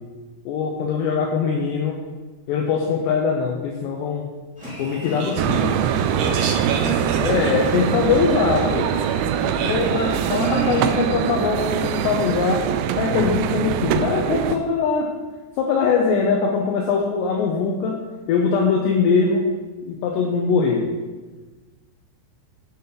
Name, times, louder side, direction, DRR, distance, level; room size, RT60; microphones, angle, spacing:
voice 1, 0.5-2.0 2.5-4.3 4.8-5.8 7.2-8.9 9.6-12.7 13.0-15.1 15.6-19.5 19.9-20.9, left 5 dB, 80° left, 0 dB, 2.7 m, -22 dB
sound 1, 4.6-11.1, equal, ahead, 2.1 m, -36 dB
voice 2, 5.1-7.5 9.5-9.8, right 5 dB, 70° right, 2 dB, 2.7 m, -31 dB
sound 2, 5.4-14.6, right 9 dB, 90° right, 2.5 m, -23 dB
10.5 x 7.1 x 4.1 m, 1.3 s
omnidirectional pair, 5.6 m